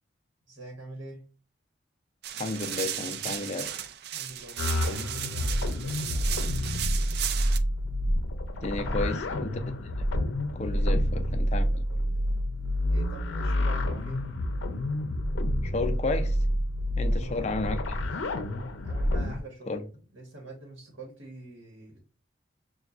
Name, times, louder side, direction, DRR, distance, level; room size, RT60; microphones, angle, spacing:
voice 1, 0.5-1.2 4.1-6.7 8.7-9.2 10.7-12.4 12.9-14.3 17.0-17.5 18.8-19.7 20.1-22.0, right 1 dB, 80° right, 1.1 m, -45 dB
Papel de aluminio liso, 2.2-7.6, right 10 dB, 55° right, 0.3 m, -35 dB
voice 2, 2.3-3.7 8.6-9.6 10.5-11.7 15.6-16.4 17.0-18.0 19.7-19.8, left 3 dB, 35° left, 0.4 m, -32 dB
sound 1, 4.6-19.4, equal, 85° left, 0.6 m, -28 dB
6.8 x 2.3 x 2.4 m
head